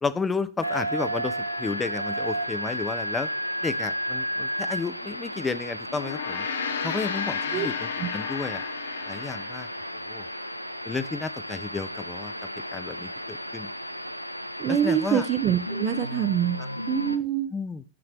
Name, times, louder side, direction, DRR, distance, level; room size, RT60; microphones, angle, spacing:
voice 1, 0.0-3.3 3.6-6.5 6.8-8.6 9.1-9.7 10.1-10.3 10.9-12.3 12.7-13.7 14.7-15.3 16.6-16.7 17.5-17.8, left 4 dB, 15° left, 14 dB, 0.6 m, -32 dB
sound 1, 0.6-17.2, equal, 90° left, 0.4 m, -33 dB
Gong, 5.9-10.5, left 6 dB, 65° left, 0.9 m, -33 dB
voice 2, 14.6-16.6 16.9-17.5, right 9 dB, 35° right, 11 dB, 0.7 m, -25 dB
9.5 x 7.1 x 3.3 m, 0.33 s
figure-of-eight pair, 90°, 0 cm